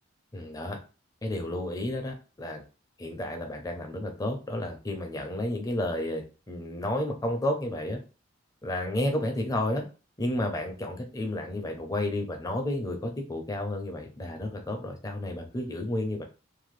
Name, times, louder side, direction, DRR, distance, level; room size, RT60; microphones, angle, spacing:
voice 1, 0.3-0.8 1.2-2.6 3.0-8.0 8.6-9.9 10.2-16.2, left 1 dB, 20° left, 3 dB, 0.5 m, -31 dB
2.7 x 2.2 x 3.1 m, 0.33 s
head